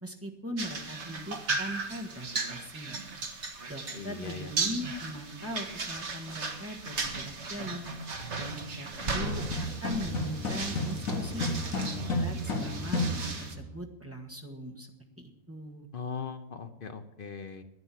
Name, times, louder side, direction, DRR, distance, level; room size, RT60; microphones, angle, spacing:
voice 1, 0.0-3.0 3.7-7.8 8.3-9.4 9.8-14.9 15.2-15.9, equal, 10° right, 1 dB, 1.4 m, -40 dB
sound 1, 0.6-13.5, right 3 dB, 55° right, 1.7 m, -36 dB
voice 2, 3.9-4.5 15.9-17.6, left 5 dB, 45° left, 8 dB, 0.8 m, -39 dB
sound 2, 9.0-13.7, left 2 dB, 75° left, 2.0 m, -32 dB
11.0 x 10.0 x 7.5 m, 0.97 s
omnidirectional pair, 1.5 m